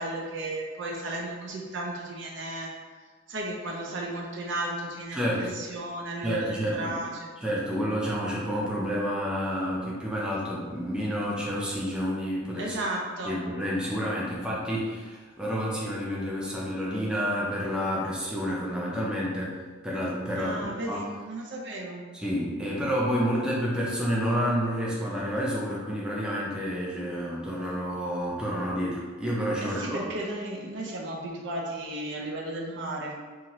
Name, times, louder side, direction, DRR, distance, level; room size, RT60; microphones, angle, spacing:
voice 1, 0.0-2.7 3.3-7.3 12.6-13.4 20.4-22.0 29.6-33.2, right 1 dB, 65° right, -1 dB, 0.5 m, -34 dB
voice 2, 5.1-5.5 6.2-7.0 7.4-12.8 13.2-21.0 22.1-30.0, equal, 5° right, -6 dB, 0.5 m, -29 dB
2.7 x 2.4 x 2.9 m, 1.4 s
head